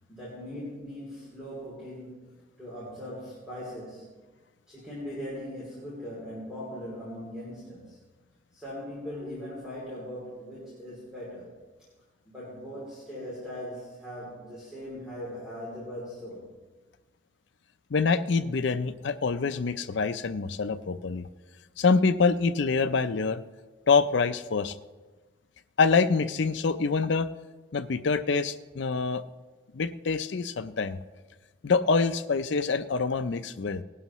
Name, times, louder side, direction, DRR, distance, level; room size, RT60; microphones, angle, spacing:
voice 1, 0.1-4.1 4.7-8.0 8.5-11.5 12.3-16.5, equal, 5° right, -7 dB, 2.8 m, -40 dB
voice 2, 17.9-21.3 21.8-23.4 23.9-24.7 25.8-27.3 27.7-29.2 29.7-31.0 31.6-33.8, left 4 dB, 65° left, 12 dB, 0.5 m, -25 dB
19.0 x 11.0 x 3.0 m, 1.3 s
head